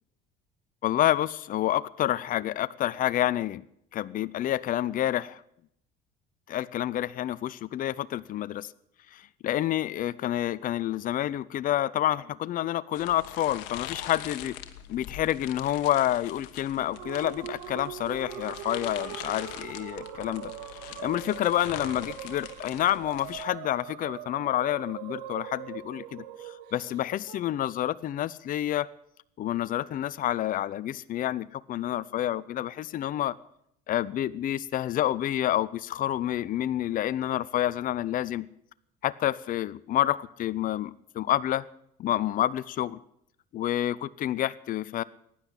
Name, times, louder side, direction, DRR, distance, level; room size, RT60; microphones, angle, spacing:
voice 1, 0.8-3.6 3.9-5.4 6.5-8.7 9.1-14.5 14.9-20.5 20.8-28.9 29.4-33.3 33.9-38.5 39.0-41.7 42.0-43.0 43.5-45.0, left 12 dB, 50° left, 17 dB, 0.7 m, -28 dB
sound 1, 12.9-23.4, left 12 dB, 75° left, 1.5 m, -43 dB
sound 2, 16.9-27.4, right 11 dB, 85° right, 1.6 m, -42 dB
15.5 x 10.0 x 8.8 m, 0.72 s
supercardioid pair, 90°, 18 cm